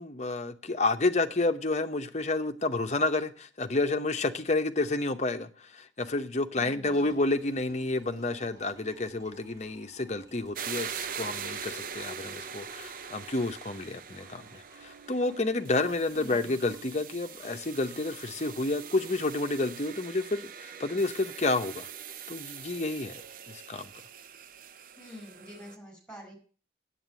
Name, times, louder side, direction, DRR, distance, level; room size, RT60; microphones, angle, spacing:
voice 1, 0.0-21.9 22.3-23.2 23.5-23.9, left 2 dB, 35° left, 0.8 m, -30 dB
voice 2, 6.5-7.0 16.2-16.5 25.0-26.3, left 1 dB, 5° left, 4.7 m, -47 dB
Liquid, 6.8-18.4, right 1 dB, 20° right, 7.8 m, -57 dB
sound 1, 10.5-25.8, right 7 dB, 45° right, 0.6 m, -42 dB
9.5 x 8.3 x 8.1 m
head